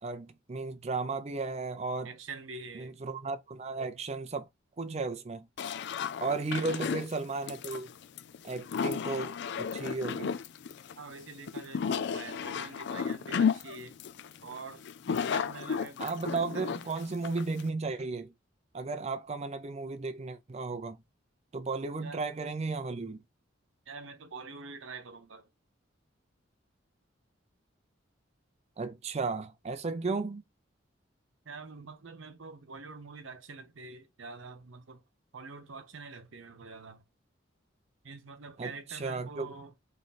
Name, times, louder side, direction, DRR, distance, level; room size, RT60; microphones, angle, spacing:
voice 1, 0.0-2.1 2.7-4.5 4.8-5.5 6.2-7.9 8.4-10.4 16.0-18.3 18.7-21.0 21.5-23.2 28.8-30.4 38.6-39.5, right 3 dB, 35° right, 0.5 m, -34 dB
voice 2, 2.0-2.9 6.5-6.8 11.0-13.9 14.4-16.6 22.0-22.2 23.9-25.5 31.5-35.0 35.3-37.0 38.0-39.7, right 4 dB, 85° right, 0.9 m, -45 dB
sound 1, 5.6-17.7, left 6 dB, 65° left, 0.4 m, -33 dB
3.7 x 3.2 x 4.1 m
head